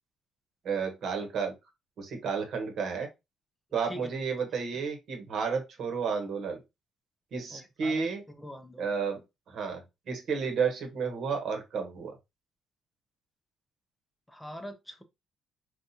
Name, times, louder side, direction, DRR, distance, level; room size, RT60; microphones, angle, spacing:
voice 1, 0.6-1.5 2.0-3.1 3.7-6.6 7.3-8.2 8.8-9.2 9.5-12.1, right 5 dB, 60° right, 1.0 m, -32 dB
voice 2, 7.5-8.1 8.4-8.9 14.3-15.0, equal, 5° left, 0.5 m, -43 dB
4.0 x 2.4 x 2.7 m
cardioid pair, 115°, 0 cm